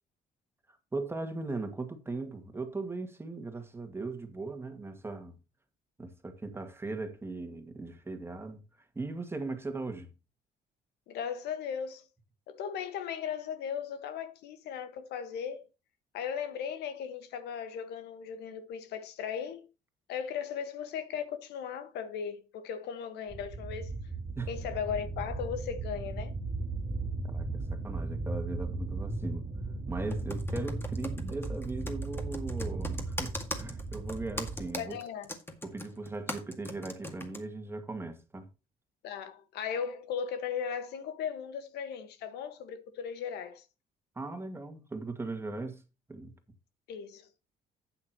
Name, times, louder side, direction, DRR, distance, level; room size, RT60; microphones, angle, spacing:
voice 1, 0.9-5.4 6.0-8.6 9.0-10.1 24.4-24.5 27.2-29.5 29.9-35.0 35.6-38.5 44.2-45.8 46.1-46.3, right 3 dB, 15° right, 2.0 m, -38 dB
voice 2, 11.1-12.1 12.5-15.7 16.1-19.6 20.1-23.9 24.5-26.3 34.8-35.3 39.0-43.6 46.9-47.2, left 7 dB, 80° left, 1.5 m, -37 dB
sound 1, 23.3-34.7, right 3 dB, 35° right, 2.0 m, -36 dB
Computer keyboard, 30.1-37.4, left 1 dB, 15° left, 2.0 m, -40 dB
12.0 x 8.8 x 3.0 m
cardioid pair, 110°, 17 cm